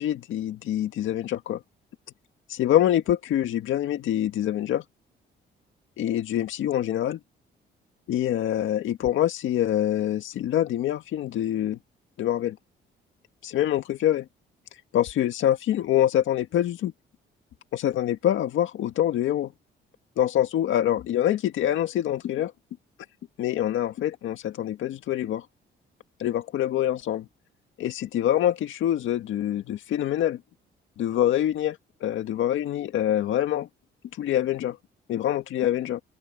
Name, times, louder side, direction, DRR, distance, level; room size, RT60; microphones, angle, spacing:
voice 1, 0.0-1.6 2.5-4.8 6.0-7.2 8.1-11.8 12.2-12.6 13.4-14.3 14.9-16.9 17.7-19.5 20.2-22.5 23.4-25.4 26.2-27.3 27.8-30.4 31.0-33.7 34.2-34.8 35.1-36.0, left 11 dB, 80° left, 1.8 m, -25 dB
open air
cardioid pair, 90°, 20 cm